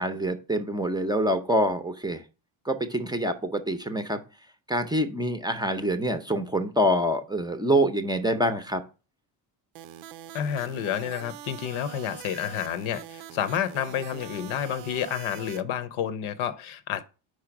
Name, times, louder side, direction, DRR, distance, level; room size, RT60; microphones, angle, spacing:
voice 1, 0.0-2.2 2.6-4.2 4.7-8.8, equal, 10° right, 0.6 m, -26 dB
sound 1, 9.8-15.6, right 11 dB, 85° right, 0.7 m, -43 dB
voice 2, 10.3-17.0, left 9 dB, 75° left, 0.8 m, -30 dB
4.9 x 4.3 x 5.9 m
cardioid pair, 115°, 49 cm